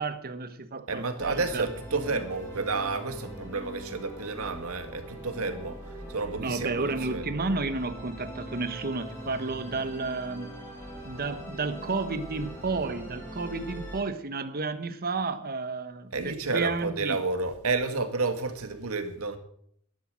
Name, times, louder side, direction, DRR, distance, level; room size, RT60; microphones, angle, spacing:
voice 1, 0.0-1.7 6.4-10.6 11.0-17.2, right 3 dB, 45° right, 1.2 m, -32 dB
voice 2, 0.9-5.8 6.1-7.3 16.1-19.4, right 3 dB, 70° right, 1.9 m, -30 dB
Musical instrument, 1.2-14.0, right 1 dB, 5° left, 7.5 m, -42 dB
11.5 x 11.5 x 6.3 m
head